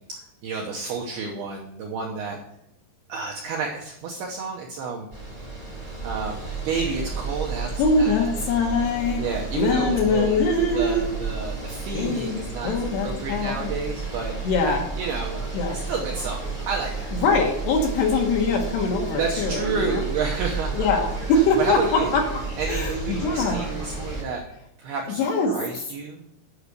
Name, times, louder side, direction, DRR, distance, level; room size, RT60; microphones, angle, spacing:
voice 1, 0.1-2.4 3.1-5.1 6.0-7.7 8.0-8.3 9.2-10.4 10.7-14.3 15.0-15.4 15.7-17.1 19.2-21.1 21.6-22.2 22.6-24.4 24.8-26.2, right 4 dB, 80° right, -1 dB, 2.3 m, -30 dB
sound 1, 5.1-24.2, right 4 dB, 25° right, 1.0 m, -32 dB
voice 2, 7.8-9.2 9.5-11.1 11.9-13.7 14.4-14.8 15.5-15.8 17.1-20.0 20.7-22.2 22.7-23.6 25.1-25.5, left 3 dB, 70° left, 0 dB, 2.8 m, -23 dB
9.8 x 6.1 x 6.7 m, 0.80 s
omnidirectional pair, 5.9 m